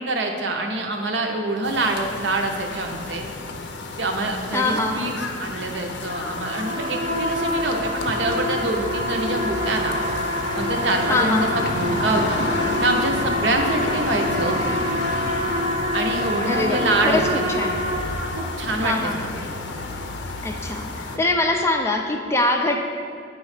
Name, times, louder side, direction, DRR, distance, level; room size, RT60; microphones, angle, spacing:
voice 1, 0.0-3.3 4.0-5.1 5.4-9.9 10.6-12.4 12.8-14.6 15.9-17.8 18.4-19.3, right 2 dB, 75° right, 3 dB, 0.7 m, -25 dB
sound 1, 1.6-21.2, left 3 dB, 75° left, 0.5 m, -31 dB
voice 2, 4.5-5.2 11.1-11.6 16.5-17.8 18.8-19.3 20.4-22.9, left 2 dB, 15° left, 4 dB, 0.4 m, -23 dB
sound 2, 6.1-18.8, equal, 30° right, 0.7 m, -27 dB
9.2 x 3.1 x 4.9 m, 2.3 s
head